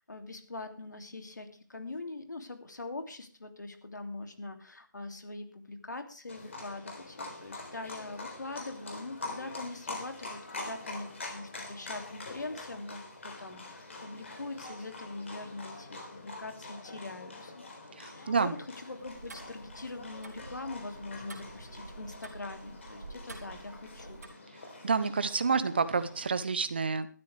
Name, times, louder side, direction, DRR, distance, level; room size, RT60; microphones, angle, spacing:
voice 1, 0.1-17.6 18.0-24.2, left 2 dB, 70° left, 6 dB, 2.8 m, -43 dB
Livestock farm animals working animals, 6.3-26.3, left 2 dB, 40° left, 3.7 m, -45 dB
voice 2, 17.9-18.6 24.8-27.1, right 5 dB, 30° right, 13 dB, 1.0 m, -29 dB
Tick-tock, 19.0-24.3, right 3 dB, 55° right, 3.1 m, -49 dB
17.5 x 13.0 x 3.5 m, 0.41 s
figure-of-eight pair, 170°, 10 cm